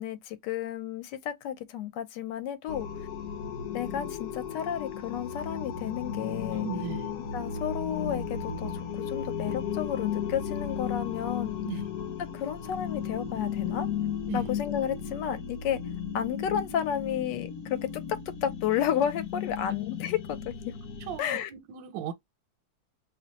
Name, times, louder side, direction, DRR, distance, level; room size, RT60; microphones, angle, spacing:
voice 1, 0.0-2.9 3.7-6.7 7.3-11.6 12.3-13.9 14.3-15.8 16.1-17.8 18.1-20.7 21.2-21.5, left 9 dB, 80° left, 1.3 m, -32 dB
sound 1, 2.7-21.2, left 7 dB, 65° left, 1.0 m, -35 dB
voice 2, 6.5-7.1 11.6-11.9 14.3-14.5 21.1-22.1, right 9 dB, 85° right, 1.3 m, -37 dB
2.9 x 2.1 x 4.0 m
omnidirectional pair, 1.9 m